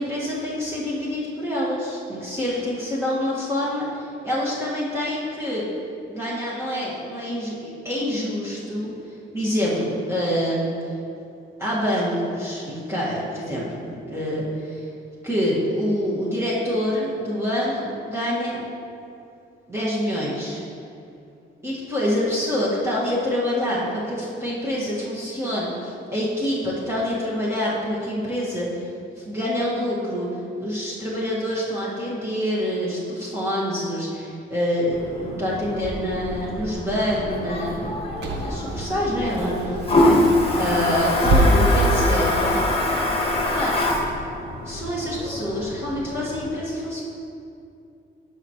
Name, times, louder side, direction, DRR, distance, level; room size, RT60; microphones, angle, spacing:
voice 1, 0.0-5.7 6.1-10.7 11.6-14.9 15.2-18.6 19.7-20.6 21.6-28.9 29.2-37.9 38.3-40.1 40.5-42.6 43.3-43.8 44.6-47.0, equal, 15° right, -8 dB, 1.8 m, -26 dB
Toilet flush, 34.9-46.5, left 1 dB, 30° left, 1.3 m, -25 dB
Car / Engine, 35.8-44.1, right 1 dB, 60° right, 1.2 m, -27 dB
11.5 x 5.7 x 3.1 m, 2.6 s
cardioid pair, 90°, 20 cm